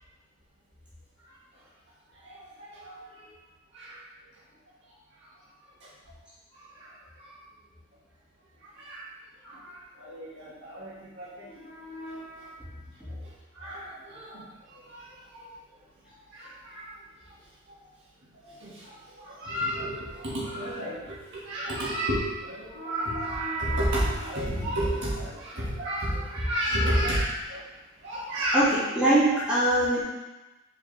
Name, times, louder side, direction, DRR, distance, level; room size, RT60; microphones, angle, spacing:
voice 1, 2.2-3.0 3.7-4.0 6.8-6.9 8.8-9.1 9.4-12.5 13.6-14.5 14.7-15.0 16.3-16.9 18.6-21.0 21.3-27.6 28.0-28.6, equal, 55° right, -7 dB, 1.9 m, -31 dB
voice 2, 28.5-30.0, right 1 dB, 5° right, -13 dB, 2.2 m, -22 dB
6.3 x 5.0 x 3.4 m, 1.1 s
head